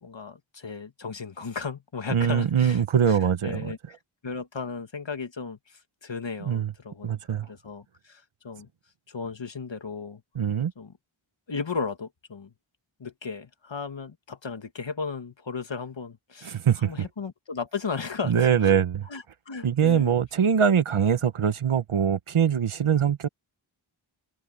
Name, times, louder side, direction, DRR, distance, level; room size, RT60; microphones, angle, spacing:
voice 1, 0.0-2.8 3.1-3.8 4.2-5.6 6.0-8.7 9.1-10.2 10.8-10.9 11.5-12.5 13.0-18.7 19.1-20.1, left 5 dB, 65° left, 1.6 m, -35 dB
voice 2, 2.1-3.7 6.5-6.7 7.0-7.5 10.3-10.7 16.4-16.9 18.2-19.1 19.6-23.3, right 8 dB, 80° right, 0.9 m, -23 dB
open air
wide cardioid pair, 55°, 49 cm